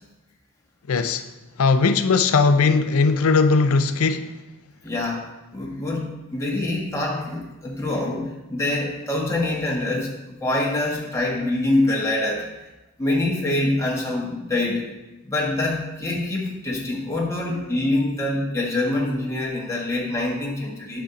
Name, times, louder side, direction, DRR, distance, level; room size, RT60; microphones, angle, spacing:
voice 1, 0.9-1.3 1.6-4.3, left 4 dB, 75° left, 0.5 m, -19 dB
voice 2, 4.8-5.2 5.5-10.1 10.4-12.5 13.0-14.9 15.2-21.0, left 2 dB, 15° left, 1.5 m, -25 dB
8.8 x 6.0 x 3.9 m
head